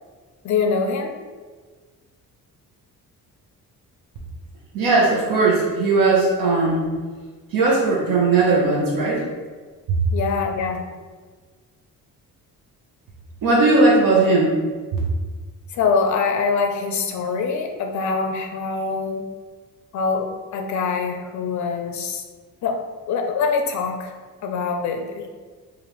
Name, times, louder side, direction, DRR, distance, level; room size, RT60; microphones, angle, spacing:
voice 1, 0.4-1.2 10.1-10.8 15.7-19.3 19.9-22.2 22.6-22.8 23.1-24.1 24.4-25.2, left 5 dB, 55° left, 4 dB, 0.4 m, -24 dB
voice 2, 4.7-6.8 7.5-9.2 9.9-10.0 13.4-14.6, right 3 dB, 70° right, -4 dB, 0.8 m, -18 dB
4.9 x 2.5 x 2.9 m, 1.4 s
cardioid pair, 170°, 35 cm